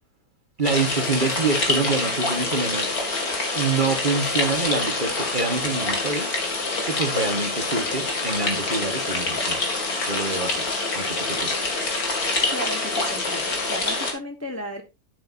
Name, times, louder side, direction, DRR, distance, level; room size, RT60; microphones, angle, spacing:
sound 1, 0.6-14.1, left 3 dB, 65° left, 2.9 m, -26 dB
voice 1, 0.6-2.9 3.5-6.4 6.9-9.6 10.0-10.6 10.9-11.6, right 3 dB, 30° right, 1.5 m, -26 dB
voice 2, 12.5-14.8, equal, 10° left, 1.0 m, -34 dB
11.0 x 8.7 x 2.7 m
omnidirectional pair, 1.7 m